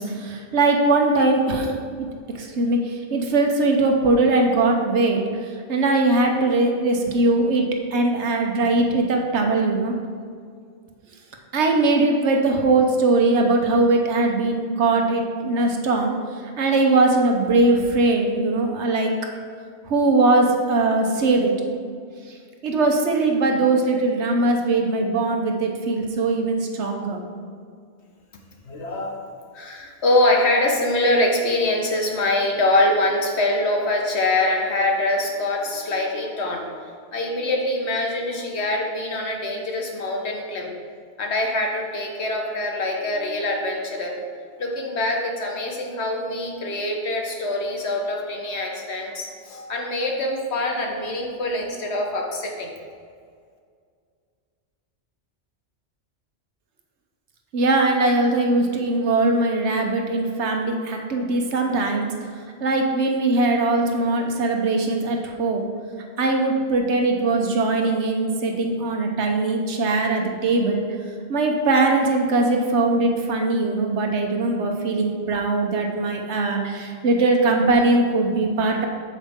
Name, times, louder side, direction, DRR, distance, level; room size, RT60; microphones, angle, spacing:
voice 1, 0.0-2.1 2.4-5.2 5.7-7.6 7.9-9.9 11.5-16.1 16.6-19.1 19.9-21.5 22.6-27.2 57.5-62.1 62.6-65.7 66.2-70.9 71.3-78.9, right 2 dB, 80° right, 3 dB, 1.2 m, -20 dB
voice 2, 28.7-29.3 29.5-40.7 41.2-44.2 44.6-52.7, left 1 dB, 70° left, 1 dB, 1.4 m, -24 dB
8.3 x 7.1 x 3.6 m, 2.1 s
omnidirectional pair, 1.2 m